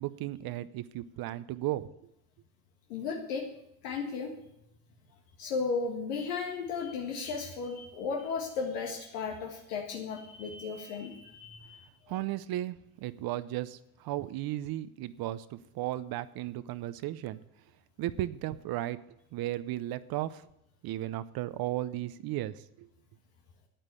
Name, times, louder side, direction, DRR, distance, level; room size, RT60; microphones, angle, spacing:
voice 1, 0.0-1.9 12.1-17.4 18.0-19.0 19.3-20.4 20.8-22.9, right 14 dB, 55° right, 14 dB, 0.7 m, -35 dB
voice 2, 2.9-3.5 3.8-4.3 5.4-11.9, left 5 dB, 85° left, 1 dB, 1.7 m, -35 dB
9.1 x 8.9 x 8.2 m, 0.81 s
supercardioid pair, 85°, 45 cm